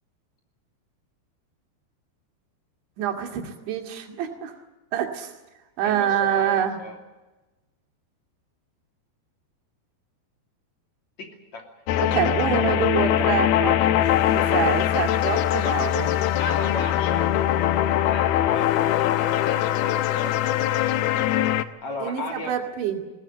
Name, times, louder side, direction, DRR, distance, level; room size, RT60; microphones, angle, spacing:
voice 1, 3.0-4.5 4.9-5.3 5.8-6.8 12.0-16.1 22.0-23.0, right 9 dB, 85° right, 3 dB, 4.7 m, -26 dB
voice 2, 5.8-7.0 11.2-11.6 16.4-21.2 21.8-22.5, left 2 dB, 45° left, 2 dB, 3.8 m, -36 dB
sound 1, 11.9-21.6, left 12 dB, 75° left, 2.4 m, -22 dB
20.5 x 19.0 x 9.0 m, 1.1 s
omnidirectional pair, 5.1 m